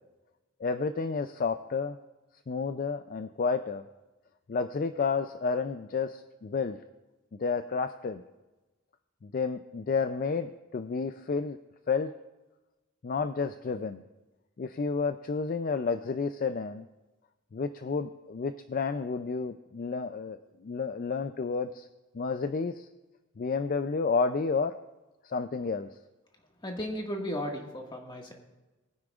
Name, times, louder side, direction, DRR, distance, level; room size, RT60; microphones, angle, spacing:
voice 1, 0.6-2.0 2.5-3.8 4.5-6.8 7.4-8.2 9.2-11.6 11.9-12.1 13.0-14.0 14.6-16.9 17.5-21.9 22.1-22.9 23.4-24.7 25.2-25.9, left 4 dB, 45° left, 10 dB, 0.4 m, -31 dB
voice 2, 26.6-28.3, equal, 25° left, 0 dB, 1.7 m, -35 dB
21.0 x 9.8 x 2.4 m, 1.1 s
head